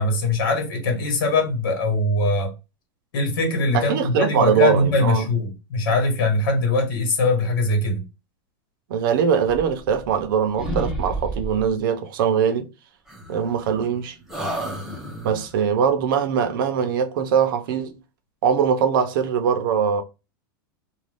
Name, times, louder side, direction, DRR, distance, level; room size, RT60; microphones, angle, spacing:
voice 1, 0.0-2.5 3.1-8.0, left 2 dB, 65° left, 1.3 m, -22 dB
voice 2, 3.7-5.3 8.9-12.7 13.3-14.2 15.2-17.9 18.4-20.0, right 7 dB, 65° right, 0.6 m, -21 dB
sound 1, 9.5-10.3 10.6-11.7 13.1-13.9 14.3-15.5, right 1 dB, 5° right, 0.7 m, -31 dB
2.5 x 2.3 x 3.3 m
supercardioid pair, 155°, 12 cm